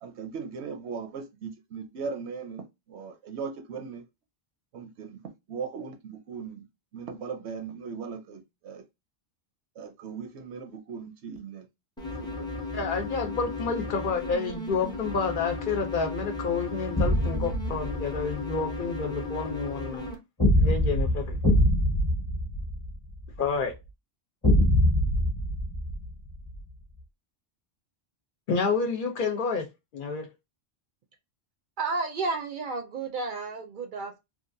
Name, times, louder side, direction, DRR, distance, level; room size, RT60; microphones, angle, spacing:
voice 1, 0.0-2.6 2.9-4.0 4.7-5.2 5.5-6.6 6.9-8.8 9.8-11.7 12.2-12.5, right 5 dB, 80° right, 0.9 m, -38 dB
sound 1, 12.0-20.1, left 2 dB, 5° left, 0.5 m, -35 dB
voice 2, 12.7-20.1 20.5-21.4 23.4-23.7 28.5-29.7 29.9-30.3, left 5 dB, 60° left, 0.7 m, -29 dB
sound 2, 17.0-18.3 20.4-23.4 24.4-26.6, equal, 25° left, 0.8 m, -24 dB
voice 3, 31.8-34.2, right 3 dB, 60° right, 0.6 m, -32 dB
2.9 x 2.4 x 2.5 m
omnidirectional pair, 1.1 m